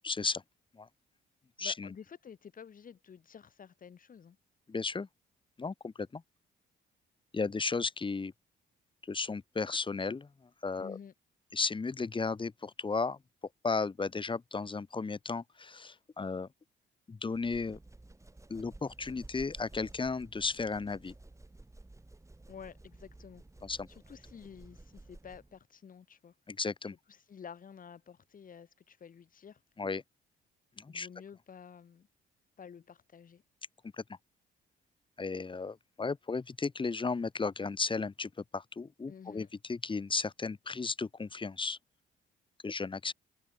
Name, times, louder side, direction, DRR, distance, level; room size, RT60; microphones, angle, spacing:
voice 1, 0.0-0.4 0.7-0.9 1.6-1.9 4.7-5.1 5.6-6.2 7.3-8.3 9.1-10.3 10.6-11.0 11.5-13.2 13.6-16.5 17.1-17.8 18.5-21.1 23.6-23.9 26.5-27.0 29.8-30.0 30.8-31.1 33.9-34.0 35.2-41.8 42.6-43.1, left 4 dB, 25° left, 1.6 m, -34 dB
voice 2, 1.6-4.4 10.8-11.1 22.5-23.4 23.9-26.3 27.1-29.6 30.9-32.1 32.6-33.4 39.1-39.5, left 7 dB, 45° left, 1.8 m, -50 dB
sound 1, 17.3-25.6, right 2 dB, 15° right, 7.7 m, -54 dB
cardioid pair, 90°, 20 cm